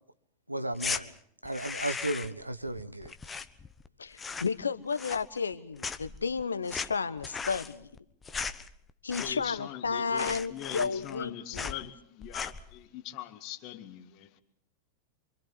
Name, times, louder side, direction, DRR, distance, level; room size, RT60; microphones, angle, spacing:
voice 1, 0.5-1.1 1.4-3.1, right 1 dB, 85° right, 1.0 m, -34 dB
sound 1, 0.7-1.0 1.4-2.4 2.7-3.9 4.1-4.6 4.9-5.5 5.8-9.6 9.9-10.0 10.2-11.3 11.5-11.8 12.2-12.7, left 5 dB, 15° left, 1.0 m, -37 dB
voice 2, 4.0-7.9 9.0-11.7, left 5 dB, 75° left, 1.2 m, -32 dB
voice 3, 9.1-14.4, left 12 dB, 40° left, 2.0 m, -42 dB
28.0 x 25.5 x 4.2 m
figure-of-eight pair, 90°, 0 cm